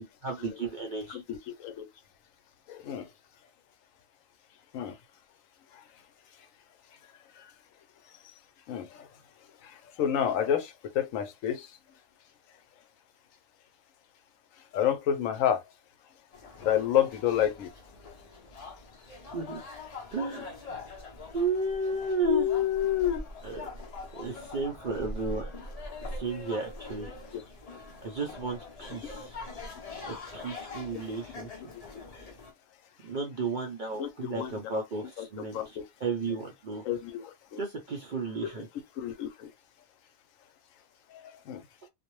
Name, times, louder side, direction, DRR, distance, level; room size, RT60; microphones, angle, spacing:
voice 1, 0.2-1.2 19.3-19.6 20.1-20.5 21.3-22.5 23.4-23.6 24.2-25.5 26.1-27.1 28.0-29.4 30.1-31.5 33.0-35.6 36.0-36.8 37.6-38.7, right 3 dB, 55° right, 0.5 m, -33 dB
voice 2, 1.1-1.9 2.7-3.0 4.7-4.9 8.7-8.9 10.0-11.7 14.7-15.6 16.6-17.7 20.4-20.5 22.2-23.2 34.0-34.6 35.2-35.8 36.8-37.6 38.4-38.5 39.0-39.5 41.5-41.6, left 10 dB, 75° left, 1.0 m, -29 dB
sound 1, 16.3-32.5, left 2 dB, 40° left, 0.6 m, -43 dB
2.5 x 2.0 x 3.0 m
omnidirectional pair, 1.4 m